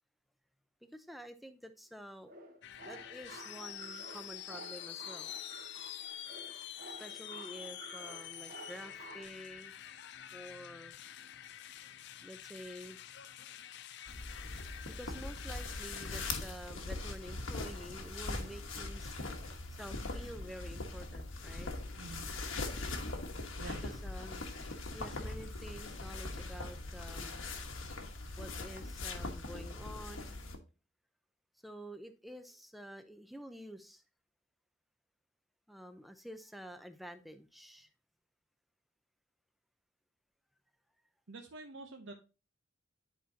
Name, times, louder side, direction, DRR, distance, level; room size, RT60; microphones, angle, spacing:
voice 1, 0.9-2.3 2.8-5.3 7.0-9.7 10.3-11.0 12.2-13.0 15.0-19.2 19.7-21.7 23.8-24.5 24.9-27.5 28.4-30.3 31.6-34.0 35.7-37.9, equal, ahead, 8 dB, 0.5 m, -49 dB
sound 1, 2.2-9.2, right 2 dB, 40° right, 1.5 m, -52 dB
sound 2, 2.6-16.3, left 11 dB, 55° left, 0.4 m, -47 dB
sound 3, 14.1-30.6, left 2 dB, 75° left, 1.2 m, -41 dB
voice 2, 41.3-42.1, right 3 dB, 65° right, 3 dB, 0.8 m, -47 dB
10.5 x 4.4 x 2.7 m, 0.32 s
head